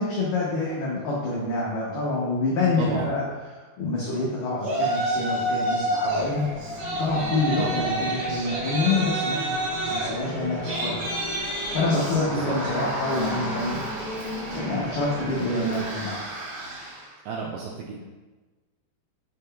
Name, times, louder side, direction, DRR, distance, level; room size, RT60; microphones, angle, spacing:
voice 1, 0.0-3.2 3.5-9.6 9.9-11.0 11.4-14.0 14.5-16.2, left 2 dB, 90° left, -5 dB, 1.9 m, -27 dB
voice 2, 2.8-3.2 7.6-8.0 12.2-12.9 17.3-18.0, right 5 dB, 85° right, -3 dB, 2.2 m, -33 dB
Yell, 4.6-6.3 6.6-17.0, right 1 dB, 65° right, 1.5 m, -30 dB
sound 1, 6.0-15.8, left 1 dB, 75° left, 1.1 m, -36 dB
6.4 x 3.6 x 2.2 m, 1.2 s
omnidirectional pair, 4.8 m